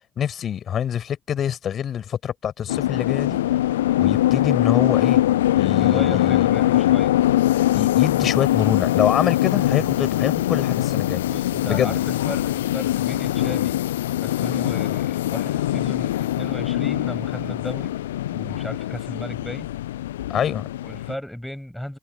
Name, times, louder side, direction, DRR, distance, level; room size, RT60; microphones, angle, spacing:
voice 1, 0.2-3.4 4.0-5.2 5.5-6.5 7.7-11.2 11.7-12.0 20.3-20.7, left 9 dB, 45° left, 5.9 m, -25 dB
sound 1, 2.7-21.1, left 14 dB, 70° left, 0.7 m, -22 dB
voice 2, 5.7-7.1 11.3-13.8 14.2-17.9 18.3-19.7 20.8-22.0, left 1 dB, 5° left, 6.5 m, -35 dB
figure-of-eight pair, 55°, 0 cm